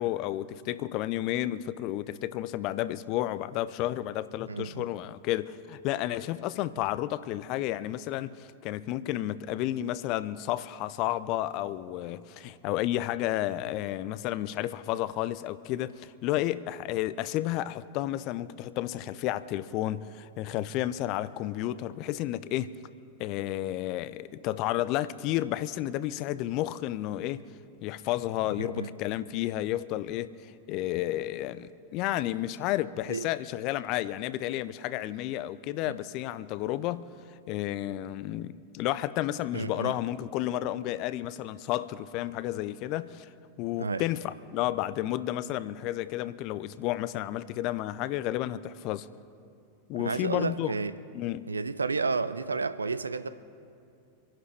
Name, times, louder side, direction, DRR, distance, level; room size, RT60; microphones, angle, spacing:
voice 1, 0.0-22.7 23.2-27.5 27.8-37.1 37.5-43.3 43.6-49.1 49.9-50.8 51.1-51.5, left 14 dB, 40° left, 0.5 m, -31 dB
voice 2, 4.5-4.8 28.6-28.9 33.1-33.3 35.8-36.0 39.5-40.0 43.8-44.0 49.9-51.0 51.5-53.3, right 4 dB, 75° right, 0.5 m, -31 dB
27.0 x 11.0 x 3.4 m
figure-of-eight pair, 90°, 0 cm